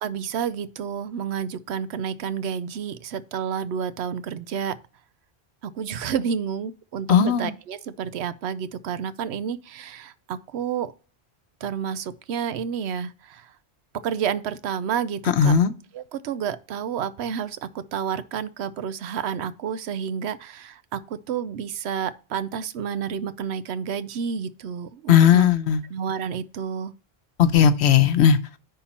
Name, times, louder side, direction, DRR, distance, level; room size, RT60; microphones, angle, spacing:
voice 1, 0.0-4.7 5.6-10.9 11.6-13.5 14.0-15.5 15.9-17.6 17.9-25.5 25.9-26.9, right 7 dB, 80° right, 0.9 m, -30 dB
voice 2, 7.1-7.5 15.4-15.7 25.1-25.8 27.4-28.4, left 8 dB, 80° left, 1.0 m, -17 dB
9.9 x 3.7 x 4.2 m
omnidirectional pair, 1.1 m